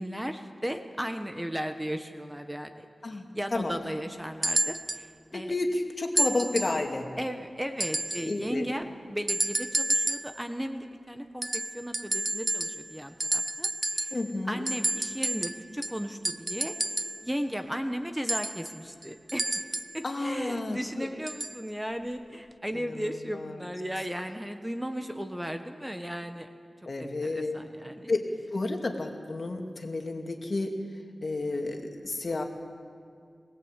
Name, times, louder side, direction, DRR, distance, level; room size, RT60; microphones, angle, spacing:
voice 1, 0.0-5.5 7.2-14.2 14.5-16.8 17.2-19.4 19.9-26.5 27.0-28.1, equal, 5° right, 6 dB, 1.3 m, -36 dB
sound 1, 4.4-5.1 6.2-6.8 7.8-8.3 9.3-10.4 11.4-12.9 13.2-14.3 14.7-17.3 18.3-20.0 21.3-21.6 22.5-22.6, right 1 dB, 25° right, 0.6 m, -30 dB
voice 2, 5.3-7.1 8.2-8.6 14.1-14.6 20.0-21.1 22.7-23.5 26.9-27.6 28.1-28.3 28.5-30.8 31.2-32.4, left 2 dB, 50° left, 3 dB, 2.5 m, -31 dB
21.5 x 19.0 x 8.3 m, 2.3 s
wide cardioid pair, 70°, 0 cm